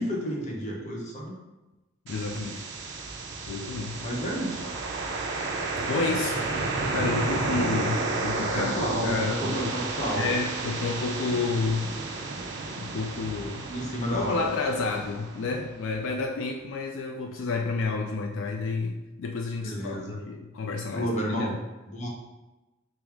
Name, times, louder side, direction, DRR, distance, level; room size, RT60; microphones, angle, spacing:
voice 1, 0.0-1.4 4.0-4.6 8.5-10.3 13.7-14.5 19.6-20.2 20.9-21.5 21.8-22.1, equal, 35° left, -2 dB, 0.7 m, -31 dB
voice 2, 2.1-2.6 3.5-4.0 5.8-6.5 6.9-8.7 9.0-9.8 10.1-12.0 12.8-13.7 14.1-21.6, left 4 dB, 75° left, 2 dB, 0.3 m, -30 dB
sound 1, 2.1-15.9, right 3 dB, 60° right, 0.5 m, -32 dB
4.5 x 2.0 x 3.5 m, 1.1 s
head